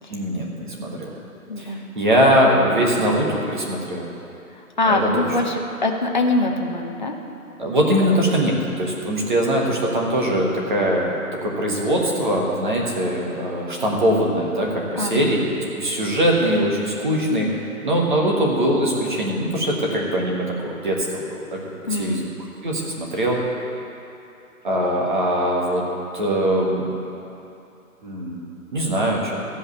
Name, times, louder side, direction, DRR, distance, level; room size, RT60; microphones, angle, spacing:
voice 1, 0.1-1.1 1.6-4.1 4.9-5.2 7.6-11.1 11.4-21.6 21.9-22.3 22.6-23.4 24.6-25.9 26.1-26.8 28.0-28.4 28.7-29.4, equal, 30° right, -2 dB, 1.6 m, -22 dB
voice 2, 1.5-1.8 4.8-7.2 7.7-8.1 15.0-15.3 21.9-22.3, left 2 dB, 30° left, 2 dB, 0.8 m, -23 dB
14.0 x 5.5 x 8.1 m, 2.7 s
hypercardioid pair, 165°, 44 cm